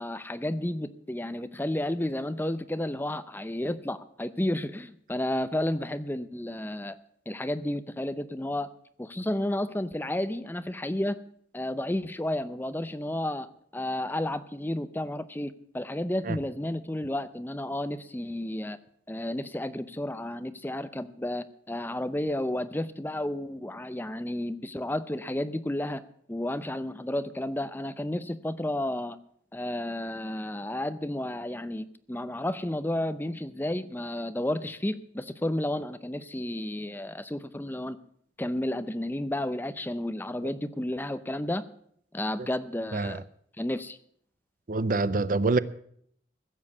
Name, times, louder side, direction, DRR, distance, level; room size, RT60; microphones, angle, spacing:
voice 1, 0.0-7.0 7.3-8.7 9.0-11.2 11.5-18.8 19.1-26.0 26.3-29.2 29.5-38.0 38.4-41.6 42.1-43.2 43.6-44.0, left 1 dB, 10° left, 0.6 m, -32 dB
voice 2, 42.9-43.2 44.7-45.6, right 3 dB, 50° right, 0.5 m, -26 dB
15.5 x 7.3 x 8.4 m
head